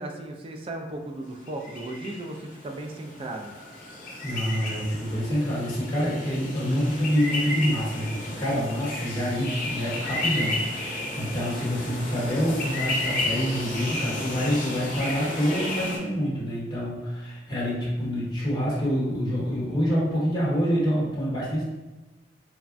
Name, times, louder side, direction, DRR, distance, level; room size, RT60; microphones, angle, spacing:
voice 1, 0.0-3.5, right 1 dB, 30° right, 3 dB, 0.3 m, -36 dB
sound 1, 1.5-16.0, left 2 dB, 45° left, 0.6 m, -33 dB
voice 2, 4.2-21.6, equal, 25° left, -7 dB, 1.0 m, -26 dB
3.3 x 2.1 x 2.5 m, 1.1 s
head